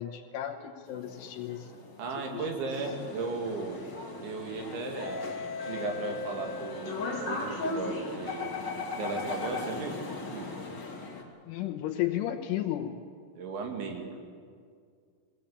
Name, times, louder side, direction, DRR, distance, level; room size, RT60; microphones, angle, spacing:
voice 1, 0.0-1.7 2.3-2.5 11.5-13.0, left 12 dB, 80° left, 2 dB, 3.4 m, -33 dB
sound 1, 0.9-11.2, left 3 dB, 35° left, 1.7 m, -37 dB
voice 2, 2.0-3.9 4.2-5.3 5.6-8.6 9.0-10.0 10.3-10.5 13.4-14.1, right 4 dB, 70° right, 3 dB, 4.4 m, -36 dB
22.0 x 18.0 x 8.6 m, 2.1 s
omnidirectional pair, 5.7 m